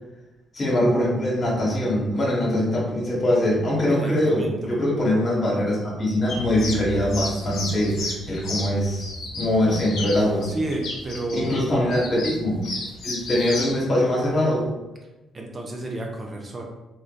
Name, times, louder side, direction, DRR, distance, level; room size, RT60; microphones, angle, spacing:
voice 1, 0.5-10.5 11.3-12.7 13.0-14.7, left 1 dB, 45° left, -4 dB, 1.0 m, -23 dB
voice 2, 3.9-4.7 10.4-11.6 15.3-16.6, right 2 dB, 40° right, 0 dB, 0.5 m, -31 dB
sound 1, 6.3-13.8, left 2 dB, 70° left, 0.5 m, -32 dB
2.5 x 2.2 x 2.2 m, 1.0 s
supercardioid pair, 60°, 0 cm